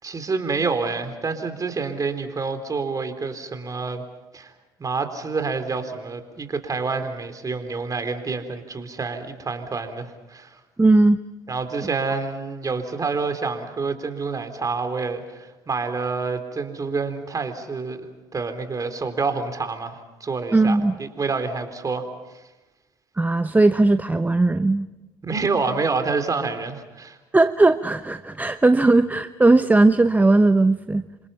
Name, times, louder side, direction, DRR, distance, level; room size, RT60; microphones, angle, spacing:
voice 1, 0.0-4.0 4.3-4.5 4.8-10.6 11.5-22.1 25.2-27.2, right 4 dB, 30° right, 8 dB, 3.9 m, -28 dB
voice 2, 10.8-11.2 20.5-20.9 23.2-24.9 27.3-31.0, right 2 dB, 15° right, 11 dB, 0.9 m, -18 dB
28.5 x 26.5 x 5.8 m, 1.1 s
hypercardioid pair, 60°, 11 cm